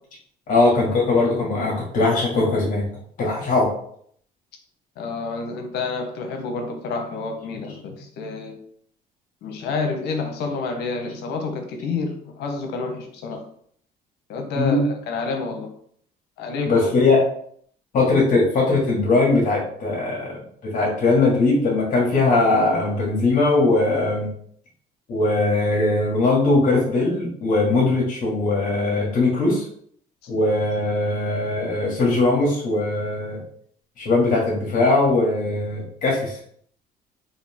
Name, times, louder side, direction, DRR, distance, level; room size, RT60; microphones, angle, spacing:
voice 1, 0.5-2.9 3.2-3.7 14.5-14.8 16.7-17.2 17.9-24.3 25.1-29.6 30.3-33.4 34.0-36.4, left 2 dB, 55° left, -3 dB, 1.5 m, -20 dB
voice 2, 5.0-8.6 9.4-13.4 14.3-15.7 16.4-16.9, left 3 dB, 80° left, 4 dB, 0.9 m, -29 dB
4.3 x 2.7 x 3.4 m, 0.63 s
cardioid pair, 110°, 17 cm